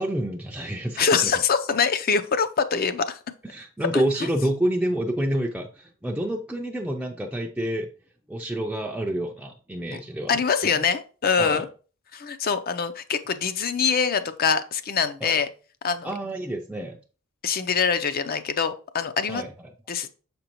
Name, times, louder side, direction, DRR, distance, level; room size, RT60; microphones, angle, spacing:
voice 1, 0.0-1.3 3.4-7.9 8.3-10.8 11.4-11.6 15.2-15.4 16.0-17.0 19.3-19.5, right 1 dB, 5° right, 0 dB, 0.4 m, -28 dB
voice 2, 1.0-3.2 3.9-4.0 9.9-10.0 10.3-11.7 12.1-15.5 15.8-16.1 17.4-19.4 19.9-20.1, left 6 dB, 40° left, 12 dB, 0.5 m, -24 dB
6.9 x 5.2 x 2.9 m, 0.38 s
head